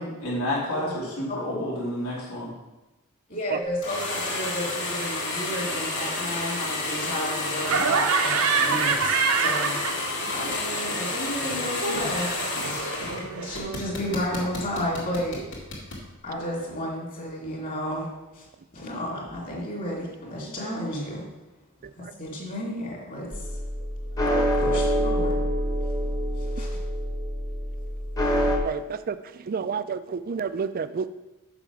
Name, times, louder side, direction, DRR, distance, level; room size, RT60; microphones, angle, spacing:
voice 1, 0.0-2.5, left 1 dB, 90° left, -5 dB, 2.9 m, -30 dB
voice 2, 1.3-1.8 3.3-12.4 13.0-15.4 16.2-18.5 18.7-21.3 22.0-23.5 24.6-25.3 26.4-26.8, equal, 40° left, -3 dB, 2.5 m, -32 dB
sound 1, 3.8-13.2 13.5-16.0, left 2 dB, 60° left, 2.6 m, -30 dB
Laughter, 7.6-10.4 10.7-13.6, right 5 dB, 75° right, 0.7 m, -26 dB
sound 2, 23.3-28.6, equal, 15° left, 1.1 m, -26 dB
voice 3, 28.6-29.2 29.5-31.1, right 6 dB, 40° right, 13 dB, 0.4 m, -30 dB
7.0 x 5.7 x 6.0 m, 1.1 s
head